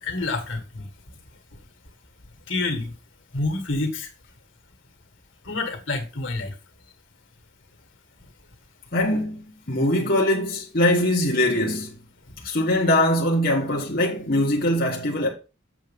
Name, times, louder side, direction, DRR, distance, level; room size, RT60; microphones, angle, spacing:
voice 1, 0.0-0.9 2.5-2.9 3.3-4.1 5.5-6.5, left 2 dB, 75° left, 1.8 m, -28 dB
voice 2, 8.9-9.4 9.7-11.9 12.4-15.3, left 1 dB, 50° left, 1.3 m, -22 dB
7.5 x 6.5 x 3.6 m
head